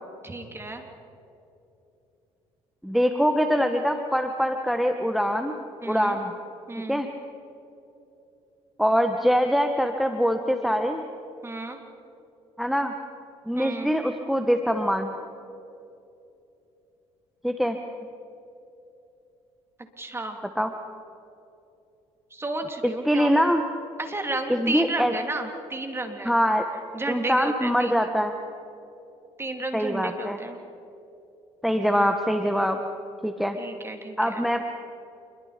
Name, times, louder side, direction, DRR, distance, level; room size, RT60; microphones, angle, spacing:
voice 1, 0.2-0.8 5.8-6.2 6.7-7.0 11.4-11.8 13.5-13.9 20.0-20.4 22.3-23.3 24.0-26.3 26.9-28.2 29.4-30.6 33.6-34.4, right 2 dB, 20° right, 4 dB, 3.4 m, -33 dB
voice 2, 2.8-5.6 5.9-6.3 6.9-7.1 8.8-11.0 12.6-12.9 13.4-15.1 17.4-17.8 20.6-20.7 23.0-23.6 24.5-25.1 26.2-26.6 27.1-28.3 29.7-30.4 31.6-32.8 33.2-33.6 34.2-34.6, equal, ahead, 6 dB, 1.5 m, -23 dB
27.5 x 22.5 x 5.3 m, 2.8 s
supercardioid pair, 75°, 13 cm